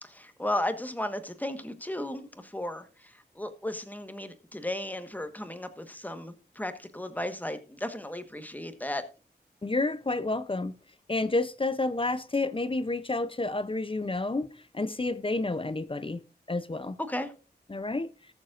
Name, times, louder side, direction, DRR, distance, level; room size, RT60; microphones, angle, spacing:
voice 1, 0.0-9.0 17.1-17.3, left 1 dB, 10° left, 1.3 m, -35 dB
voice 2, 9.6-10.7 11.1-16.2 16.5-17.0 17.7-18.1, left 2 dB, 30° left, 0.6 m, -30 dB
19.0 x 7.2 x 2.5 m
wide cardioid pair, 85°, 18 cm